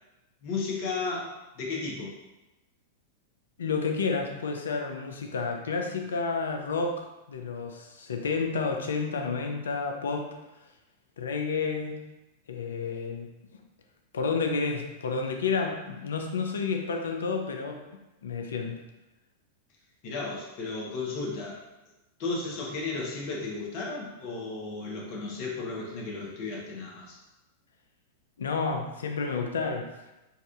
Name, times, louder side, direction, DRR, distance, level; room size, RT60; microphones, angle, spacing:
voice 1, 0.4-2.2 20.0-21.6 22.2-27.2, left 3 dB, 50° left, -2 dB, 1.0 m, -34 dB
voice 2, 3.6-10.3 11.2-12.0 12.5-13.6 14.1-17.8 18.2-18.8 28.4-29.9, left 4 dB, 75° left, 3 dB, 0.5 m, -30 dB
4.0 x 2.5 x 2.4 m, 1.0 s
hypercardioid pair, 100°, 0 cm